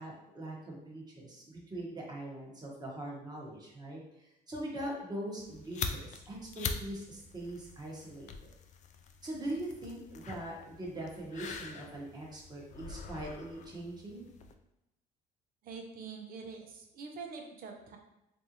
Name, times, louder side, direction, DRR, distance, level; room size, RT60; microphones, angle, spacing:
voice 1, 0.0-8.5 9.2-14.3, right 1 dB, 25° right, -3 dB, 1.1 m, -42 dB
sound 1, 5.4-14.5, left 5 dB, 45° left, 0.4 m, -44 dB
voice 2, 15.6-18.0, right 5 dB, 60° right, 3 dB, 0.7 m, -45 dB
3.4 x 2.6 x 2.9 m, 0.88 s
cardioid pair, 110°, 17 cm